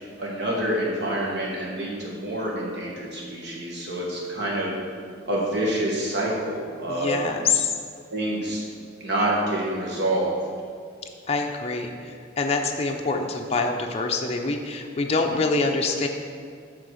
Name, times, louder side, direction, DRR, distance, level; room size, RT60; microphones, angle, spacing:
voice 1, 0.2-4.7 5.2-7.2 8.1-8.6 9.0-10.3, right 1 dB, 60° right, -4 dB, 1.4 m, -27 dB
voice 2, 6.9-7.7 11.3-11.9 12.4-16.1, left 3 dB, 35° left, 2 dB, 0.5 m, -25 dB
7.5 x 3.8 x 6.3 m, 2.2 s
head